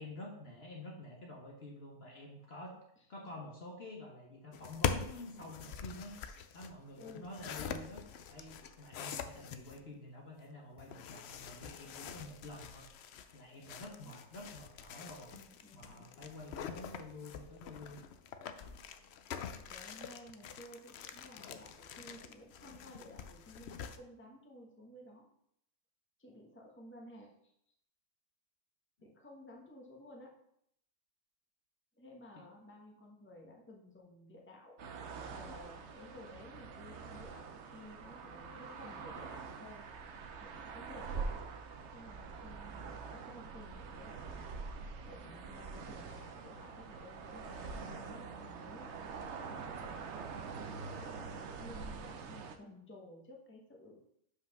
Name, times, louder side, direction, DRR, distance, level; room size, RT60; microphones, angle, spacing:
voice 1, 0.0-2.7 3.1-6.1 6.5-8.0 8.3-15.3 15.7-18.0 18.5-18.7, left 1 dB, 45° left, -1 dB, 1.2 m, -49 dB
sound 1, 4.5-9.8 10.8-24.0, left 7 dB, 65° left, 0.6 m, -44 dB
voice 2, 7.0-7.3 13.8-14.2 15.3-16.1 19.6-25.3 26.2-27.5 29.0-30.3 31.9-34.7 35.3-39.8 40.4-41.3 41.9-44.7 45.1-48.9 49.5-50.1 51.0-54.0, left 1 dB, 10° left, -1 dB, 1.1 m, -54 dB
sound 2, 34.8-52.6, right 5 dB, 55° right, 0.9 m, -45 dB
5.7 x 4.9 x 5.9 m, 0.73 s
omnidirectional pair, 1.6 m